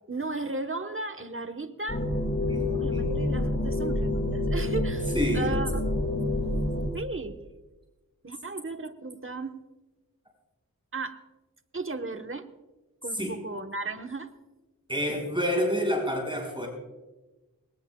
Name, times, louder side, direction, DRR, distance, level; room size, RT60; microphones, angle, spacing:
voice 1, 0.1-2.1 2.8-6.1 6.9-7.4 8.2-9.6 10.9-11.2 11.7-12.5 13.0-14.3, right 3 dB, 35° right, 6 dB, 1.2 m, -35 dB
sound 1, 1.9-6.9, left 1 dB, 40° left, 6.1 m, -27 dB
voice 2, 2.5-3.1 5.1-5.5 13.1-13.4 14.9-16.7, equal, 15° right, -1 dB, 5.7 m, -28 dB
20.5 x 19.0 x 2.3 m, 1.2 s
wide cardioid pair, 45°, 35 cm